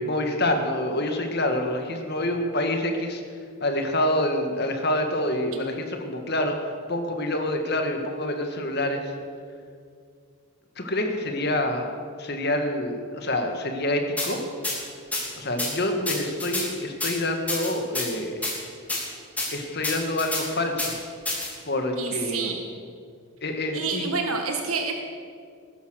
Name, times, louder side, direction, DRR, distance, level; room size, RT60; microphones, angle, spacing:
voice 1, 0.0-3.2 3.6-9.1 10.8-14.4 15.4-18.4 19.5-20.9 21.7-22.5 23.4-24.1, left 1 dB, 50° left, 5 dB, 1.9 m, -27 dB
sound 1, 14.2-14.3 14.6-14.8 15.1-15.2 15.6-15.7 16.1-16.6 17.0-17.1 17.5-18.1 18.4-18.5 18.9-19.0 19.4-19.5 19.8-20.4 20.8-20.9 21.3-21.5, left 2 dB, 5° left, 3.1 m, -27 dB
voice 2, 21.9-22.6 23.7-24.9, right 4 dB, 80° right, 3 dB, 1.6 m, -28 dB
20.0 x 11.0 x 6.5 m, 2.2 s
head